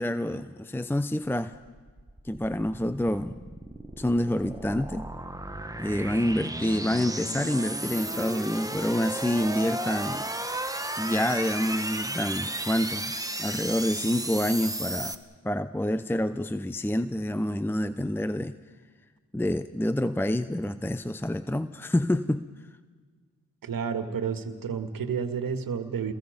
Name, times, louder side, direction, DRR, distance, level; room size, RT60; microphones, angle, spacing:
voice 1, 0.0-1.5 2.2-3.3 4.0-5.1 5.8-10.3 11.0-13.1 13.4-15.2 15.4-18.5 19.3-22.4, left 1 dB, 5° left, 12 dB, 0.7 m, -27 dB
sound 1, 1.7-15.2, right 1 dB, 10° right, 1.5 m, -34 dB
voice 2, 23.6-26.1, right 6 dB, 65° right, 8 dB, 1.9 m, -30 dB
29.0 x 21.5 x 5.2 m, 1.5 s
supercardioid pair, 45°, 37 cm